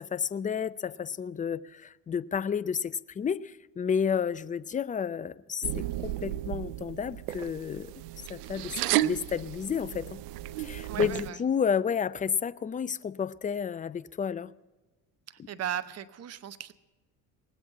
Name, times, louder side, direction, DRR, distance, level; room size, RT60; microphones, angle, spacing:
voice 1, 0.0-7.9 8.3-8.7 9.0-10.2 10.6-14.5, left 7 dB, 20° left, 0.4 m, -31 dB
sound 1, 5.6-11.3, right 15 dB, 80° right, 0.6 m, -33 dB
voice 2, 10.9-11.4 15.3-16.7, right 10 dB, 35° right, 0.9 m, -37 dB
19.5 x 8.0 x 8.6 m
hypercardioid pair, 75°, 46 cm